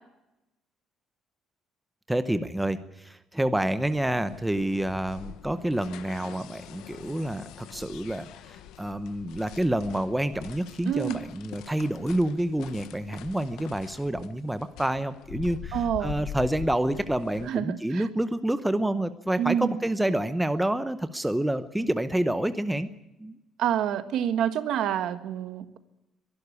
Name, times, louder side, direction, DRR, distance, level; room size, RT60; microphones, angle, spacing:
voice 1, 2.1-22.9 23.2-23.4, right 1 dB, 5° right, 11 dB, 0.8 m, -28 dB
sound 1, 3.9-17.5, left 10 dB, 85° left, 1.2 m, -44 dB
voice 2, 10.9-11.2 15.7-16.1 17.5-18.0 19.4-19.8 23.6-25.8, right 10 dB, 60° right, 11 dB, 1.5 m, -27 dB
23.0 x 12.0 x 9.7 m, 0.95 s
cardioid pair, 170°, 0 cm